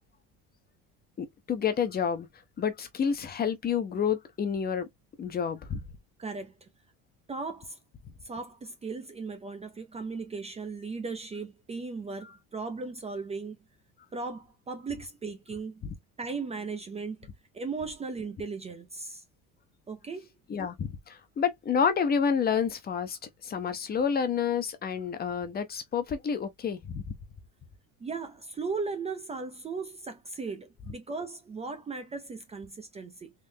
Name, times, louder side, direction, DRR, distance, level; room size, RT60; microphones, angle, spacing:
voice 1, 1.2-2.3 2.6-4.9 5.2-5.8 15.8-15.9 20.5-27.1, left 7 dB, 25° left, 0.7 m, -29 dB
voice 2, 6.2-6.7 7.3-7.8 8.2-13.6 14.1-15.8 16.2-17.3 17.5-19.2 19.9-20.3 28.0-33.3, right 4 dB, 20° right, 0.5 m, -37 dB
3.7 x 3.1 x 2.7 m
cardioid pair, 150°, 35 cm